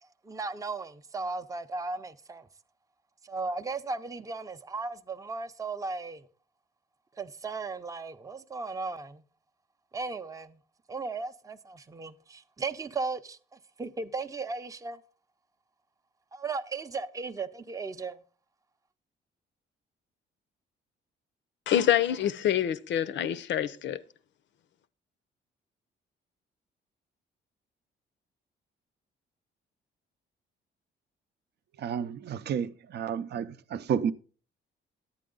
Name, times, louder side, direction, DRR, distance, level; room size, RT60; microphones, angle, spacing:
voice 1, 0.2-2.5 3.2-6.3 7.2-9.2 9.9-10.6 10.9-15.0 16.3-18.2, right 4 dB, 15° right, 0.6 m, -36 dB
voice 2, 21.7-24.0, left 10 dB, 65° left, 0.6 m, -26 dB
voice 3, 31.8-34.1, right 8 dB, 55° right, 0.6 m, -31 dB
10.5 x 8.6 x 3.8 m
cardioid pair, 90°, 20 cm